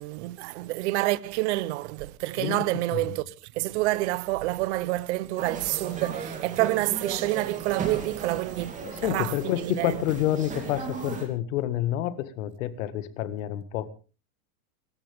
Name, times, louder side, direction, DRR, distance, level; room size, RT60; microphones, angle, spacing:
voice 1, 0.0-10.0, right 18 dB, 50° right, 0.8 m, -28 dB
sound 1, 5.4-11.3, right 6 dB, 15° right, 2.8 m, -36 dB
voice 2, 8.8-13.8, left 13 dB, 60° left, 1.9 m, -28 dB
26.5 x 14.0 x 3.5 m
supercardioid pair, 165°, 45 cm